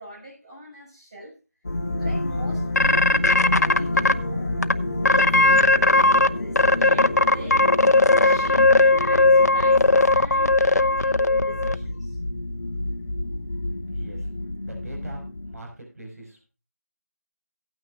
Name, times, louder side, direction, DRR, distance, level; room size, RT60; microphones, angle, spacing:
voice 1, 0.0-1.4 2.0-4.5 4.9-7.7 8.2-12.2, equal, 25° right, 6.4 m, -42 dB
sound 1, 1.6-15.6, left 1 dB, 20° left, 2.6 m, -29 dB
sound 2, 2.8-4.1 4.6-4.7 5.0-6.3 6.6-11.8, left 2 dB, 80° left, 0.8 m, -17 dB
voice 2, 13.9-16.5, right 1 dB, 65° right, 5.4 m, -42 dB
17.0 x 9.3 x 2.5 m
figure-of-eight pair, 175°, 9 cm